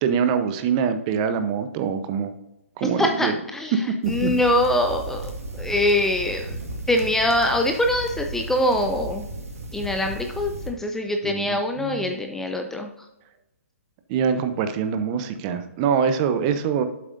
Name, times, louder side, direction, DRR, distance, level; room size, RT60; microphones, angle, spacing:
voice 1, 0.0-2.3 2.8-3.3 3.7-3.8 4.2-4.3 11.2-12.1 14.1-16.8, right 7 dB, 30° right, 10 dB, 0.8 m, -24 dB
voice 2, 2.8-6.6 6.9-9.2 9.7-12.9, left 1 dB, 5° left, 4 dB, 0.5 m, -23 dB
sound 1, 4.0-10.7, right 2 dB, 90° right, 2.1 m, -35 dB
8.9 x 7.7 x 2.6 m, 0.93 s
hypercardioid pair, 135°, 8 cm